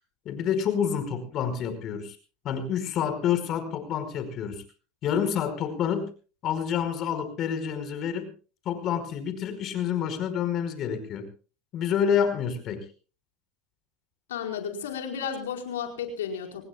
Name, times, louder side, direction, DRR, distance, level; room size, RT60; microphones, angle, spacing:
voice 1, 0.2-2.2 2.4-4.6 5.0-6.1 6.4-8.3 8.6-11.3 11.7-12.8, left 8 dB, 50° left, 9 dB, 5.0 m, -28 dB
voice 2, 14.3-16.7, left 7 dB, 85° left, 3 dB, 4.7 m, -33 dB
26.5 x 19.5 x 2.3 m, 0.37 s
hypercardioid pair, 90°, 0 cm